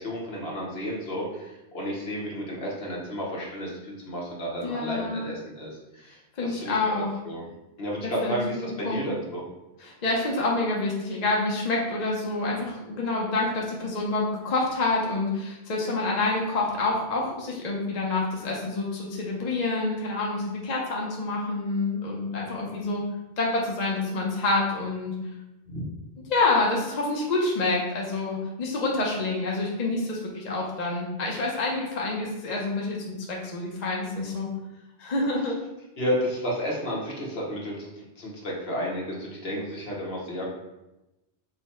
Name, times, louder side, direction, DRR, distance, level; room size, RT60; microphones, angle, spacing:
voice 1, 0.0-6.8 7.2-7.5 7.8-9.4 25.7-25.8 36.0-40.6, equal, 65° left, -3 dB, 1.3 m, -32 dB
voice 2, 4.6-5.2 6.4-7.1 8.0-9.0 9.8-23.0 23.4-25.1 26.3-34.5 35.0-35.6, left 2 dB, 45° left, -3 dB, 0.7 m, -27 dB
5.5 x 2.1 x 4.2 m, 0.98 s
omnidirectional pair, 1.1 m